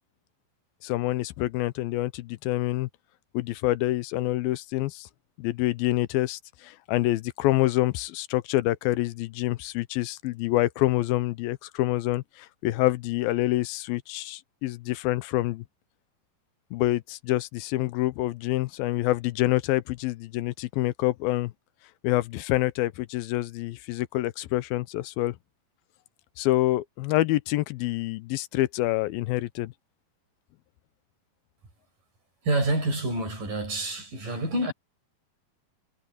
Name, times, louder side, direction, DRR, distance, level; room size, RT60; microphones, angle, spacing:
voice 1, 0.8-2.9 3.3-5.1 5.4-15.6 16.7-21.5 22.0-25.4 26.4-29.7, left 17 dB, 90° left, 2.6 m, -27 dB
voice 2, 32.4-34.7, right 2 dB, 65° right, 9.7 m, -27 dB
omnidirectional pair, 4.2 m